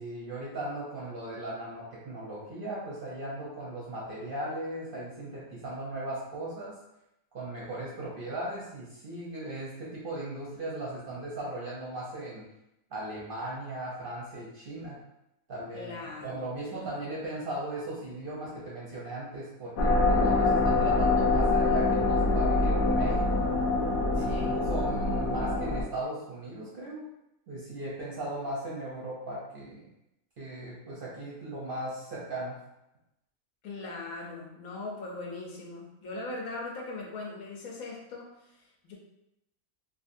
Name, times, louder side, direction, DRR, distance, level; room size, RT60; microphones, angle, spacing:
voice 1, 0.0-6.8 7.3-12.4 12.9-15.0 15.5-15.9 16.2-23.5 24.1-27.0 27.5-29.9 30.4-32.6, right 1 dB, 55° right, -6 dB, 0.7 m, -37 dB
voice 2, 15.7-17.0 24.1-24.6 33.6-38.9, left 3 dB, 90° left, -1 dB, 1.1 m, -40 dB
sound 1, 19.8-25.8, left 3 dB, 75° left, 0.5 m, -25 dB
2.8 x 2.5 x 2.5 m, 0.86 s
omnidirectional pair, 1.5 m